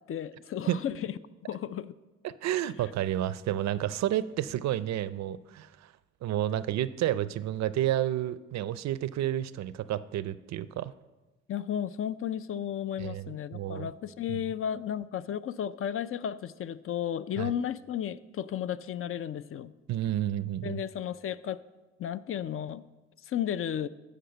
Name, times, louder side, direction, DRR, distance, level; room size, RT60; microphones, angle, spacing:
voice 1, 0.1-1.1 1.4-1.9 11.5-19.7 20.6-21.6 22.0-22.8 23.3-23.9, left 9 dB, 45° left, 16 dB, 0.4 m, -33 dB
voice 2, 2.2-5.9 6.2-10.9 13.0-13.9 14.3-14.4 17.4-17.5 19.9-20.8, right 12 dB, 65° right, 16 dB, 0.5 m, -30 dB
10.5 x 5.1 x 6.8 m, 1.1 s
cardioid pair, 90°, 30 cm